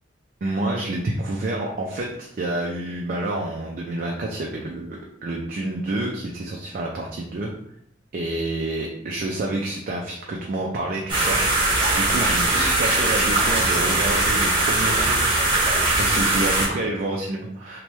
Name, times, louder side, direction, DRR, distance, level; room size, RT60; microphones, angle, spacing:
voice 1, 0.4-7.5 8.1-11.4 11.9-15.3 16.0-17.8, right 2 dB, 50° right, 0 dB, 0.4 m, -28 dB
sound 1, 11.1-16.7, right 2 dB, 25° right, 1.2 m, -20 dB
3.1 x 2.2 x 3.0 m, 0.73 s
head